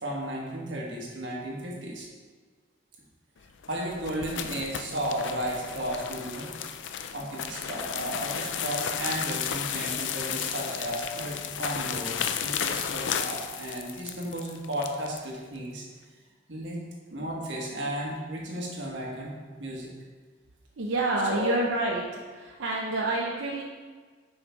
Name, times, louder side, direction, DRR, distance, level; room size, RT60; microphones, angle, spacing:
voice 1, 0.0-2.1 3.7-6.5 7.1-15.8 16.5-16.8 17.1-19.9 21.3-21.5, right 1 dB, 70° right, -3 dB, 1.5 m, -34 dB
sound 1, 3.5-15.2, left 8 dB, 75° left, 0.4 m, -33 dB
voice 2, 20.8-22.0 22.3-23.6, right 2 dB, 90° right, -2 dB, 0.7 m, -28 dB
6.4 x 5.0 x 4.6 m, 1.5 s
head